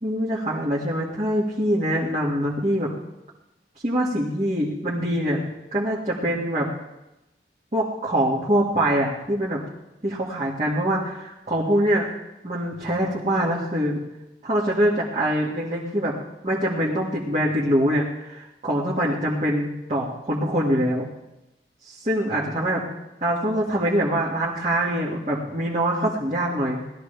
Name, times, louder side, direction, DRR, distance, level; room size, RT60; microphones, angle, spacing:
voice 1, 0.0-2.9 3.8-5.4 5.7-6.7 7.7-9.6 10.0-12.1 12.4-14.0 14.4-16.2 16.4-21.1 21.8-22.8 23.2-26.8, right 1 dB, 35° right, -7 dB, 1.9 m, -24 dB
19.5 x 13.0 x 3.4 m, 0.94 s
head